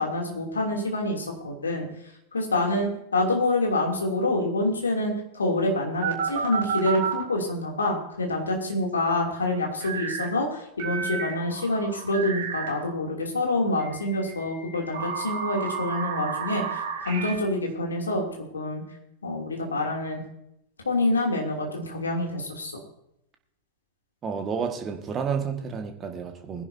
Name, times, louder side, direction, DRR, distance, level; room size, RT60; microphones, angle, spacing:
voice 1, 0.0-1.9 2.3-18.2 18.5-18.8 19.2-20.2 20.8-22.8, left 2 dB, 75° left, 1 dB, 2.8 m, -27 dB
sound 1, 6.0-7.2 9.8-10.3 10.8-12.9 13.8-17.3, right 6 dB, 55° right, 4.2 m, -31 dB
voice 2, 24.2-26.6, right 6 dB, 25° right, 4 dB, 1.7 m, -30 dB
21.5 x 11.0 x 2.7 m, 0.80 s
figure-of-eight pair, 90°, 0 cm